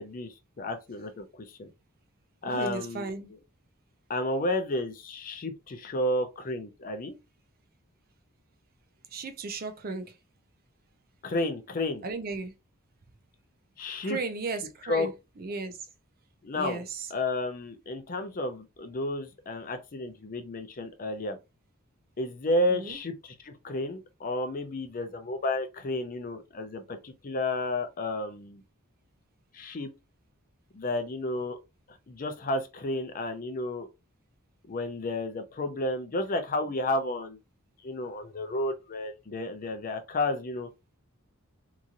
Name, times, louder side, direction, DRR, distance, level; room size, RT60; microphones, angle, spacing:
voice 1, 0.0-1.7 2.4-3.1 4.1-7.1 11.2-12.0 13.8-14.2 14.9-15.1 16.4-16.8 17.1-21.4 22.2-28.6 29.5-29.9 30.7-31.6 31.9-33.9 34.7-37.4 37.8-40.7, left 2 dB, 40° left, 0.5 m, -32 dB
voice 2, 2.4-3.3 9.1-10.2 12.0-12.5 14.0-15.9 16.5-17.1 22.7-23.0, right 3 dB, 45° right, 0.5 m, -35 dB
2.9 x 2.5 x 2.5 m
head